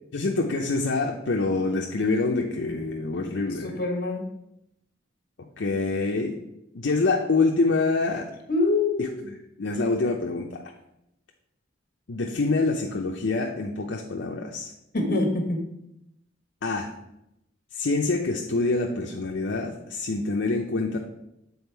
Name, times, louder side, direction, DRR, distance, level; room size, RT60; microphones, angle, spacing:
voice 1, 0.1-3.8 5.6-6.4 6.7-8.3 9.0-10.6 12.1-14.7 16.6-16.9 17.7-21.0, left 3 dB, 75° left, 1 dB, 0.6 m, -26 dB
voice 2, 3.3-4.3 8.5-9.2 14.9-15.7, left 2 dB, 55° left, 4 dB, 1.3 m, -25 dB
7.1 x 4.0 x 4.6 m, 0.83 s
head